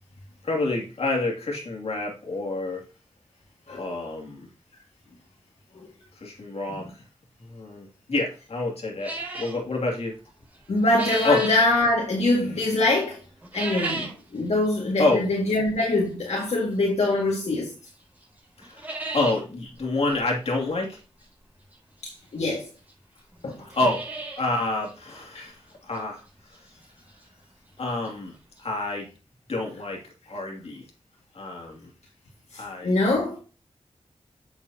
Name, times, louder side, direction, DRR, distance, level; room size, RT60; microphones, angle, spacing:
voice 1, 0.4-2.8 3.7-4.5 6.2-6.9 7.4-10.2 11.2-11.4 15.0-15.2 18.6-18.8 19.1-21.0 23.7-24.0 24.4-26.2 27.8-28.3 28.6-29.1 29.5-30.8 31.3-31.9 32.5-32.9, left 2 dB, 65° left, 2.6 m, -28 dB
sound 1, 9.0-9.6 10.5-11.7 13.4-14.2 14.6-14.7 15.5-15.6 17.3-17.4 17.9-18.0 18.2-18.3 18.6-19.4 19.8-19.9 20.1-20.2 21.7-21.8 22.6-22.7 22.9-23.0 23.5-24.5 24.8-24.9 25.4-25.5 26.0-26.1 27.8-27.9 28.0-28.1 28.6-28.7, right 2 dB, 15° right, 4.0 m, -33 dB
voice 2, 10.7-13.2 13.5-17.7 22.0-22.7 23.4-23.6 25.3-25.5 32.5-33.4, left 2 dB, 80° left, 2.0 m, -24 dB
8.0 x 6.8 x 2.8 m
wide cardioid pair, 85°, 11 cm